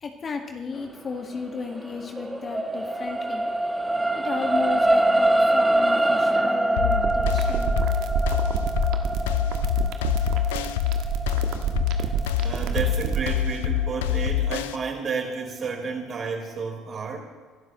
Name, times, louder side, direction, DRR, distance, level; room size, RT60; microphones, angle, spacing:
voice 1, 0.0-3.5 4.1-7.7 12.7-12.8, left 5 dB, 35° left, 4 dB, 1.8 m, -34 dB
sound 1, 1.7-14.2 14.8-14.9, right 1 dB, 10° right, 1.1 m, -25 dB
sound 2, 6.8-14.8, left 10 dB, 80° left, 0.5 m, -25 dB
sound 3, 6.9-13.3, right 7 dB, 65° right, 1.3 m, -27 dB
voice 2, 12.4-17.2, right 5 dB, 45° right, 0 dB, 4.4 m, -31 dB
24.5 x 12.5 x 3.1 m, 1.5 s
hypercardioid pair, 60°, 0 cm